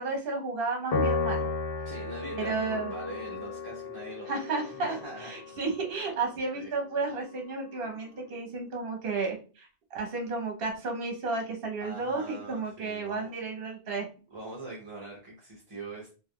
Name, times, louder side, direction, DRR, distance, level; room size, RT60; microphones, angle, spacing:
voice 1, 0.0-1.5 2.4-2.9 4.3-4.9 5.3-14.0, right 3 dB, 65° right, 2 dB, 1.0 m, -32 dB
Piano, 0.9-7.5, left 3 dB, 70° left, 0.9 m, -34 dB
voice 2, 1.8-5.3 6.5-6.7 11.8-13.3 14.3-16.1, right 2 dB, 35° right, -4 dB, 0.8 m, -43 dB
3.3 x 2.6 x 2.2 m, 0.35 s
omnidirectional pair, 1.0 m